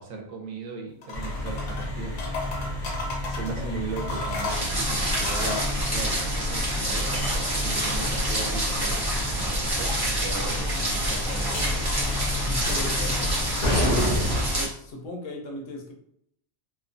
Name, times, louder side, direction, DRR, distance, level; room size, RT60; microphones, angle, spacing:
voice 1, 0.0-2.7 3.3-7.3 7.5-9.1 9.3-11.6, right 4 dB, 75° right, 1 dB, 1.0 m, -37 dB
sound 1, 1.0-1.9 2.2-3.5 4.0-5.7, left 3 dB, 85° left, 1.3 m, -33 dB
sound 2, 1.1-14.5, left 1 dB, 55° left, 0.5 m, -31 dB
sound 3, 4.5-14.7, right 1 dB, 30° right, 0.4 m, -27 dB
voice 2, 12.4-13.4 13.8-14.2 14.5-15.9, left 1 dB, 70° left, 1 dB, 0.9 m, -36 dB
2.9 x 2.1 x 2.5 m, 0.71 s
omnidirectional pair, 1.4 m